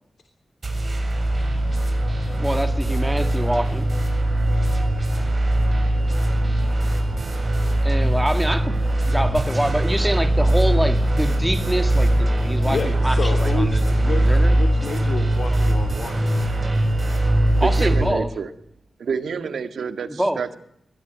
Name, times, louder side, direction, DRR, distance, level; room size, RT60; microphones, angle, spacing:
sound 1, 0.6-18.1, right 1 dB, 35° right, 7.2 m, -21 dB
voice 1, 2.3-3.9 7.8-14.6 17.6-18.3 20.2-20.6, right 1 dB, 5° right, 2.0 m, -26 dB
voice 2, 12.6-16.3, left 4 dB, 70° left, 3.4 m, -30 dB
voice 3, 17.6-18.5 19.0-20.6, right 6 dB, 90° right, 2.0 m, -28 dB
22.0 x 17.0 x 9.3 m
wide cardioid pair, 105°, 0 cm